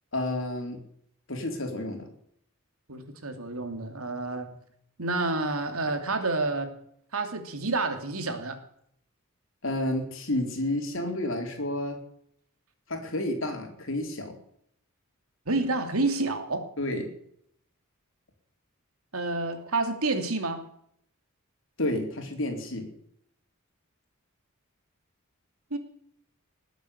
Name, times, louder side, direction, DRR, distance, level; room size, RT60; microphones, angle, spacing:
voice 1, 0.1-0.8 1.3-2.0 9.6-12.0 12.9-14.4 16.8-17.1 21.8-22.9, left 1 dB, 65° left, 3 dB, 4.0 m, -30 dB
voice 2, 2.9-4.5 5.0-6.7 7.1-8.6 15.5-16.7 19.1-20.6 25.7-25.8, right 3 dB, 85° right, 6 dB, 2.8 m, -29 dB
19.5 x 8.1 x 8.5 m, 0.69 s
head